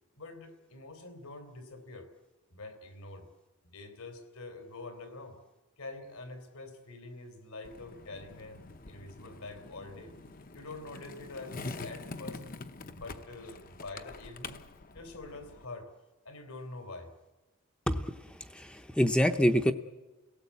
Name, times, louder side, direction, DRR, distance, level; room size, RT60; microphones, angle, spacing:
voice 1, 0.2-2.1 2.5-3.3 3.6-5.4 5.8-10.1 10.5-12.4 12.9-14.7 14.9-15.9 16.2-17.1, left 2 dB, 80° left, 7 dB, 3.4 m, -45 dB
Skateboard, 7.6-15.6, left 3 dB, 40° left, 0.8 m, -45 dB
voice 2, 18.5-19.7, equal, 5° left, 7 dB, 0.7 m, -26 dB
29.0 x 17.5 x 8.4 m, 1.2 s
head